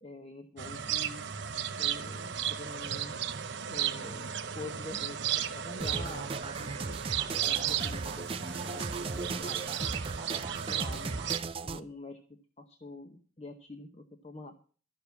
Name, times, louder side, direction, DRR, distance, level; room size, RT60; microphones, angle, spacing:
voice 1, 0.0-1.2 1.8-3.1 3.7-6.3 6.5-7.0 7.4-9.6 10.3-11.3 11.6-14.5, left 2 dB, 30° left, 5 dB, 0.9 m, -46 dB
sound 1, 0.6-11.4, right 9 dB, 60° right, 0.8 m, -34 dB
sound 2, 5.8-11.8, right 3 dB, 30° right, 0.5 m, -37 dB
13.0 x 6.8 x 8.2 m, 0.43 s
head